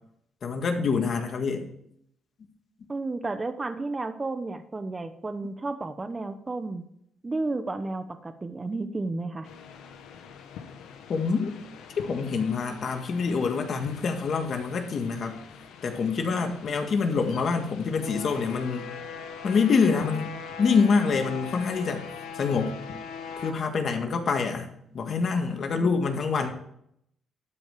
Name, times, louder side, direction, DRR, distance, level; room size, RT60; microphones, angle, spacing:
voice 1, 0.4-1.7 11.1-11.5 12.0-15.4 15.8-18.9 19.4-20.3 20.6-22.0 22.4-22.8 23.4-24.7 24.9-26.5, left 5 dB, 55° left, 5 dB, 1.8 m, -26 dB
voice 2, 2.9-6.8 7.2-9.5, right 3 dB, 25° right, 9 dB, 0.9 m, -32 dB
sound 1, 9.4-23.5, left 6 dB, 85° left, 1.2 m, -42 dB
12.0 x 5.3 x 6.8 m, 0.72 s
cardioid pair, 90°, 0 cm